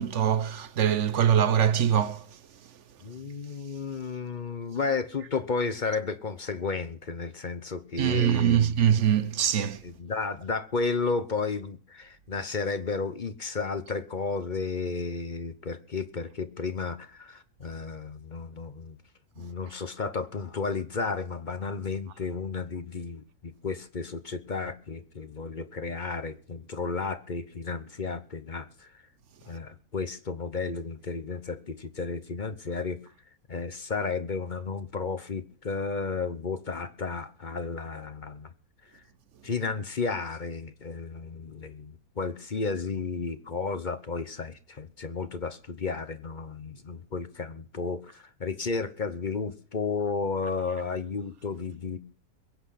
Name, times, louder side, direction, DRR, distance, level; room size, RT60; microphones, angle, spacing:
voice 1, 0.0-2.2 8.0-9.8, right 9 dB, 55° right, 1.1 m, -23 dB
voice 2, 3.0-8.7 9.8-19.0 19.4-28.9 29.5-33.0 33.5-38.5 38.9-39.0 39.4-52.0, left 4 dB, 35° left, 0.8 m, -33 dB
22.0 x 8.8 x 5.7 m
omnidirectional pair, 1.7 m